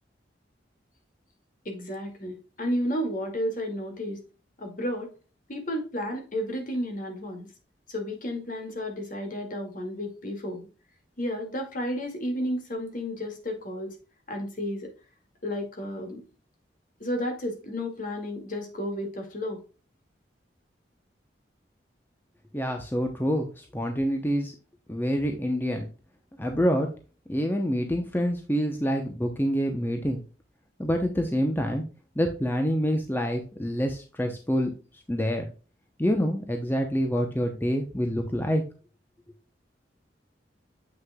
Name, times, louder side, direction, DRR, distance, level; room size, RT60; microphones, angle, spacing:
voice 1, 1.7-4.2 4.6-5.1 5.5-7.5 7.9-10.7 11.2-13.9 14.3-14.9 15.4-16.2 17.0-19.6, equal, 50° left, 3 dB, 2.1 m, -32 dB
voice 2, 22.5-24.5 24.9-25.9 26.4-26.9 27.3-30.2 30.8-31.8 32.2-34.7 35.1-35.5 36.0-38.6, equal, 10° left, 4 dB, 0.7 m, -26 dB
7.6 x 6.4 x 2.3 m, 0.35 s
head